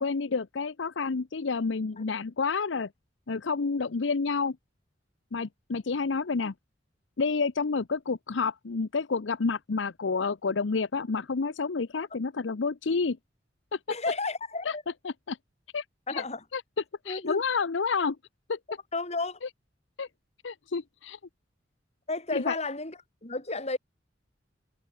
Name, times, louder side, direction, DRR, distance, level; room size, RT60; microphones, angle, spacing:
voice 1, 0.0-2.9 3.3-4.6 5.3-6.5 7.2-13.2 13.7-13.8 14.6-14.7 15.0-15.4 15.7-16.2 16.5-16.6 17.0-18.2 18.5-18.6 20.0-20.1 20.4-21.2 22.3-22.6, left 4 dB, 80° left, 0.7 m, -29 dB
voice 2, 13.9-14.8 16.1-16.4 17.1-17.4 18.9-19.4 22.1-23.8, left 3 dB, 35° left, 4.2 m, -32 dB
head